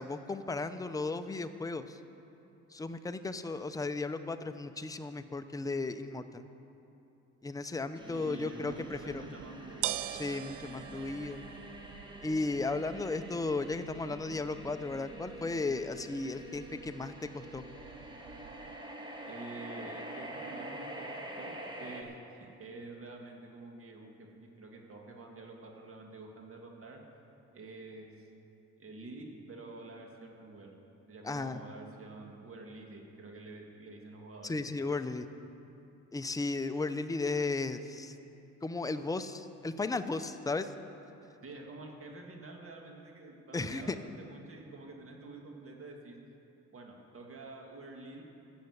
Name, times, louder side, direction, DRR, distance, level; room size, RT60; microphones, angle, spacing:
voice 1, 0.0-2.0 2.7-6.5 7.4-9.2 10.1-11.5 12.2-17.6 31.2-31.6 34.4-35.3 36.1-38.1 38.6-40.7 43.5-44.0, left 3 dB, 10° left, 9 dB, 0.6 m, -35 dB
sound 1, 8.0-22.0, right 1 dB, 15° right, 1.6 m, -46 dB
voice 2, 8.1-11.4 19.3-21.1 21.4-21.5 21.8-27.0 27.5-28.3 28.8-30.7 31.1-34.6 41.4-46.2 46.7-48.2, right 2 dB, 45° right, 1 dB, 2.0 m, -48 dB
sound 2, 8.7-18.8, right 13 dB, 85° right, 0.5 m, -45 dB
13.0 x 7.0 x 7.9 m, 2.8 s
cardioid pair, 90°, 30 cm